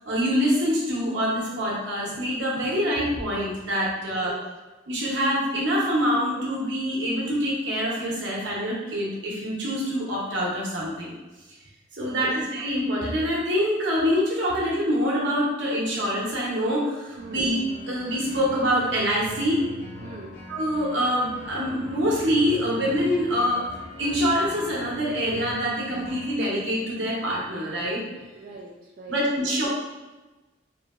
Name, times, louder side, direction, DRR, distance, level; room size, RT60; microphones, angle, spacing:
voice 1, 0.0-4.4 4.9-11.1 12.0-17.6 17.9-19.6 20.5-23.7 24.0-28.0 29.1-29.7, equal, 65° right, -4 dB, 0.9 m, -25 dB
voice 2, 4.0-4.4 12.0-12.4 17.2-17.5 20.0-20.4 28.3-29.6, right 3 dB, 45° right, -3 dB, 0.3 m, -42 dB
sound 1, 17.2-26.3, left 1 dB, 85° left, 0.8 m, -42 dB
3.1 x 2.7 x 2.4 m, 1.1 s
head